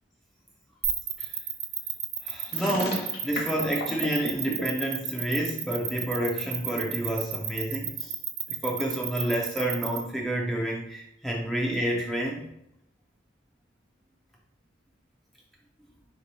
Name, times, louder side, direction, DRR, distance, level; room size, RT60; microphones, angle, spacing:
sound 1, 0.8-10.0, right 10 dB, 85° right, 0.5 m, -31 dB
voice 1, 2.2-8.1 8.6-12.4, right 1 dB, ahead, -3 dB, 0.4 m, -29 dB
sound 2, 2.5-4.6, left 2 dB, 55° left, 0.9 m, -34 dB
3.8 x 2.9 x 4.0 m, 0.79 s
head